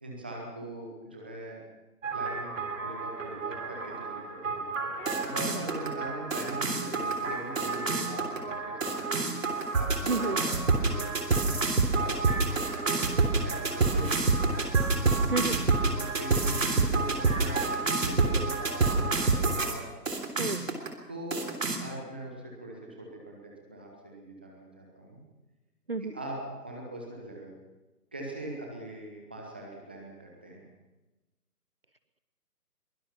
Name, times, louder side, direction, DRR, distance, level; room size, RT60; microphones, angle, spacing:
voice 1, 0.0-1.6 2.1-4.7 5.2-11.2 11.8-13.1 13.4-15.2 15.9-19.9 21.1-25.2 26.0-27.5 28.1-30.6, right 1 dB, 5° right, -1 dB, 0.8 m, -41 dB
sound 1, 2.0-19.7 20.1-20.9 21.3-21.8, right 3 dB, 50° right, 3.4 m, -28 dB
voice 2, 10.0-10.4 15.3-15.7 20.4-20.8 25.9-26.1, right 3 dB, 35° right, 12 dB, 0.7 m, -31 dB
22.5 x 20.0 x 5.8 m, 1.1 s
figure-of-eight pair, 150°, 49 cm